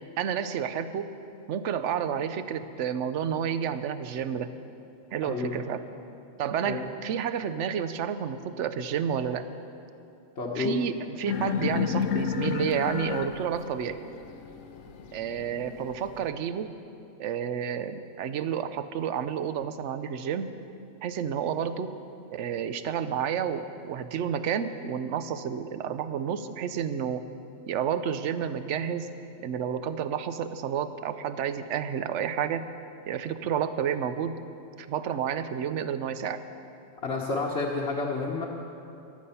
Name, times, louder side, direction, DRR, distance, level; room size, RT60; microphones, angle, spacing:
voice 1, 0.2-1.1 1.5-4.5 5.1-5.8 6.4-9.5 10.6-14.0 15.1-16.7 17.2-20.5 21.0-21.9 22.3-27.2 27.7-29.1 29.4-32.7 33.1-34.4 34.8-36.4, right 8 dB, 70° right, 12 dB, 1.0 m, -30 dB
voice 2, 5.2-5.6 6.6-6.9 10.4-10.8 37.0-38.5, left 3 dB, 55° left, -4 dB, 1.3 m, -30 dB
sound 1, 11.3-16.3, left 7 dB, 80° left, 1.2 m, -31 dB
14.5 x 11.5 x 5.6 m, 2.8 s
omnidirectional pair, 1.3 m